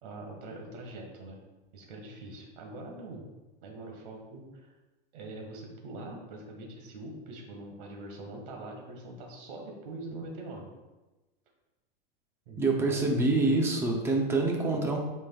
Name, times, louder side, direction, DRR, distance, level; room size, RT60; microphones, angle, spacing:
voice 1, 0.0-1.4 1.7-3.2 3.6-4.7 5.1-10.7 12.5-13.8, right 1 dB, 60° right, 1 dB, 1.7 m, -43 dB
voice 2, 12.6-15.0, right 2 dB, 10° right, 1 dB, 0.6 m, -26 dB
8.5 x 5.1 x 2.3 m, 1.1 s
supercardioid pair, 160°, 30 cm